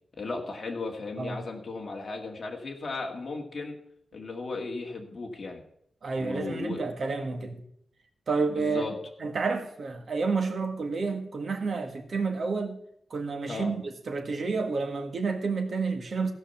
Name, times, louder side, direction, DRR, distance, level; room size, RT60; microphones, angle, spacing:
voice 1, 0.2-3.8 4.1-5.6 6.2-6.8 8.5-9.0 13.5-13.7, left 3 dB, 40° left, 2.0 m, -35 dB
voice 2, 6.0-7.6 8.3-8.9 9.2-12.8 13.1-16.3, right 4 dB, 55° right, 1.7 m, -30 dB
16.0 x 5.7 x 7.1 m
wide cardioid pair, 160°, 0 cm